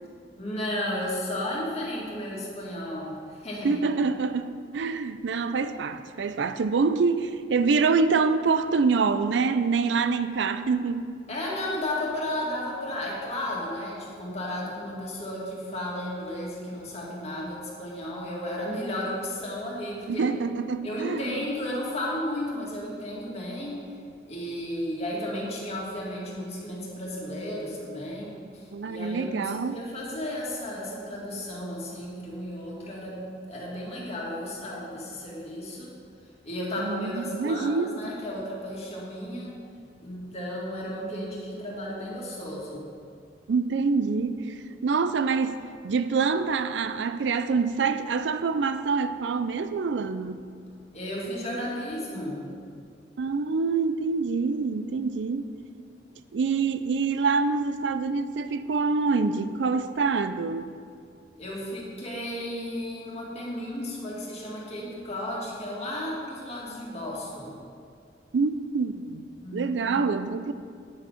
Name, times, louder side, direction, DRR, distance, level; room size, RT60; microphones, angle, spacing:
voice 1, 0.4-3.8 11.3-20.3 20.8-23.8 24.3-36.0 36.4-39.5 40.0-42.9 50.9-52.5 61.3-67.6 69.4-70.0, left 1 dB, 35° left, 2.2 m, -34 dB
voice 2, 3.6-11.1 20.1-21.4 28.7-29.8 36.8-38.0 43.5-44.5 44.8-50.5 53.2-55.5 56.3-60.7 68.3-69.2 69.5-70.5, right 4 dB, 75° right, 0.4 m, -26 dB
9.6 x 6.9 x 5.7 m
head